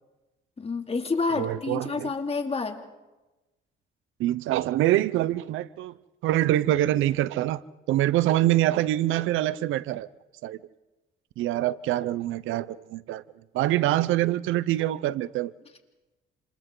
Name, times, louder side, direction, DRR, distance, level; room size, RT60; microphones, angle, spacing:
voice 1, 0.6-2.8, left 4 dB, 30° left, 5 dB, 2.7 m, -29 dB
voice 2, 1.3-2.1 4.2-5.9 6.2-7.6 7.9-10.1 10.4-10.6 11.4-13.2 13.5-15.5, right 14 dB, 90° right, 18 dB, 0.7 m, -25 dB
28.0 x 28.0 x 3.9 m, 1.1 s
cardioid pair, 90°, 20 cm